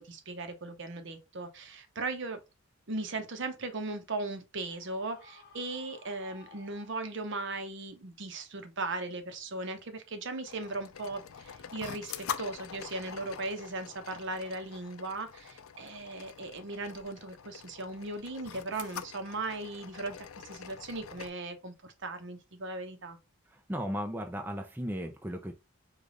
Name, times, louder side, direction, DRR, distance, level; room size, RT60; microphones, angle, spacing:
voice 1, 0.0-2.4 2.9-23.2, right 2 dB, 55° right, 0.8 m, -38 dB
Screaming, 4.7-7.4, left 4 dB, 50° left, 1.2 m, -56 dB
sound 1, 10.4-21.3, left 8 dB, 75° left, 0.4 m, -45 dB
voice 2, 23.5-25.5, equal, 10° right, 0.5 m, -36 dB
4.9 x 2.4 x 3.8 m
head